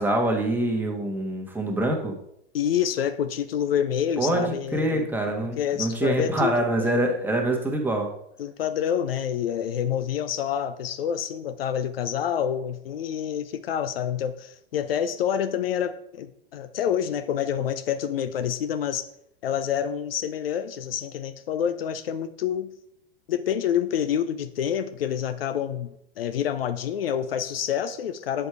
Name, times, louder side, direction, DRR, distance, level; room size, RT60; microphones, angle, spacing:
voice 1, 0.0-2.2 4.2-8.1, right 1 dB, 5° right, 1 dB, 1.5 m, -25 dB
voice 2, 2.5-5.1 5.6-6.9 8.4-19.1 19.4-22.7 23.3-28.5, left 9 dB, 70° left, 11 dB, 0.6 m, -27 dB
8.0 x 5.0 x 4.7 m, 0.75 s
figure-of-eight pair, 90°, 30 cm